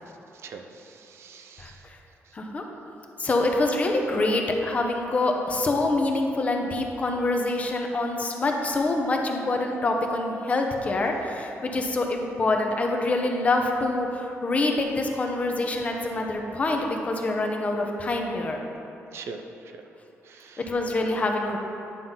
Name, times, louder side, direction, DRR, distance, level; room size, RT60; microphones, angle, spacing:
voice 1, 0.4-1.8 19.1-19.4 20.3-20.6, right 5 dB, 65° right, 5 dB, 0.6 m, -42 dB
voice 2, 1.6-2.0 2.3-2.6 3.2-18.6 20.6-21.6, left 2 dB, 30° left, 2 dB, 0.7 m, -26 dB
9.8 x 3.7 x 5.6 m, 3.0 s
cardioid pair, 145°, 5 cm